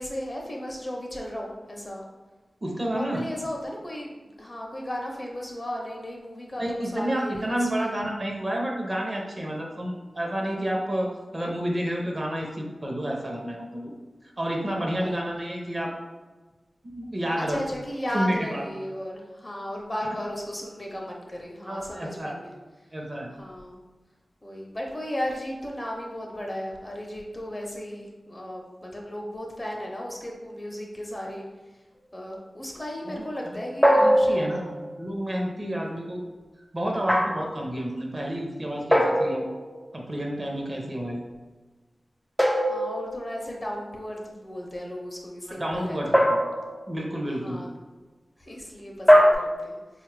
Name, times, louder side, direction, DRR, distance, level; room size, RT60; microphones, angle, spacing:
voice 1, 0.0-2.1 2.9-7.9 15.0-15.1 17.4-22.5 23.3-23.8 24.4-31.4 32.1-34.3 42.6-46.3 47.4-47.7 48.4-50.0, equal, 30° left, -1 dB, 0.8 m, -35 dB
voice 2, 2.6-3.2 6.6-13.9 14.4-15.9 16.8-17.6 18.1-18.6 21.7-22.3 22.9-23.3 33.2-33.3 34.0-36.2 36.7-39.4 39.9-41.2 45.5-46.4 46.9-47.6, equal, 40° right, -1 dB, 0.7 m, -30 dB
sound 1, 33.8-34.9 37.1-37.6 38.9-39.8 42.4-43.5 46.1-47.0 49.1-49.3, equal, 10° left, 0.4 m, -21 dB
3.8 x 2.4 x 3.3 m, 1.2 s
wide cardioid pair, 55°, 0 cm